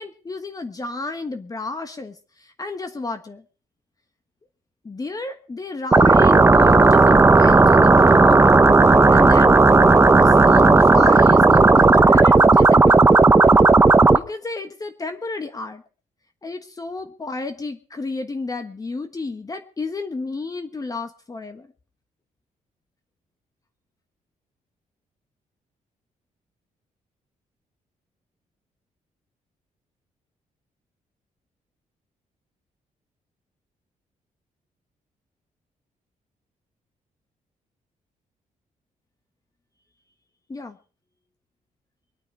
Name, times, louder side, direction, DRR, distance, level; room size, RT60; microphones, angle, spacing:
voice 1, 0.0-3.4 4.8-8.6 8.9-9.5 10.2-13.1 14.1-15.8 16.4-21.7 40.5-40.8, left 3 dB, 25° left, 7 dB, 1.4 m, -32 dB
sound 1, 5.9-14.2, right 3 dB, 20° right, 0.9 m, -13 dB
24.0 x 9.0 x 4.8 m, 0.38 s
cardioid pair, 110°, 14 cm